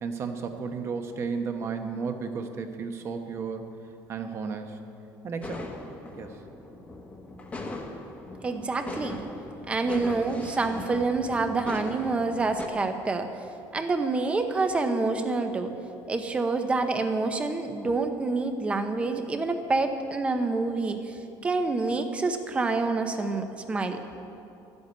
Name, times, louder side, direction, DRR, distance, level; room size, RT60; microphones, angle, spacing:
voice 1, 0.0-3.6 4.1-4.8 5.2-5.6 6.2-6.4, right 5 dB, 35° right, 5 dB, 1.0 m, -33 dB
sound 1, 5.4-12.7, left 2 dB, 20° left, 1.1 m, -39 dB
voice 2, 8.4-9.3 9.7-13.3 13.7-15.7 16.1-24.0, right 3 dB, 15° right, 7 dB, 0.8 m, -27 dB
13.0 x 8.0 x 9.5 m, 2.7 s
cardioid pair, 175°, 8 cm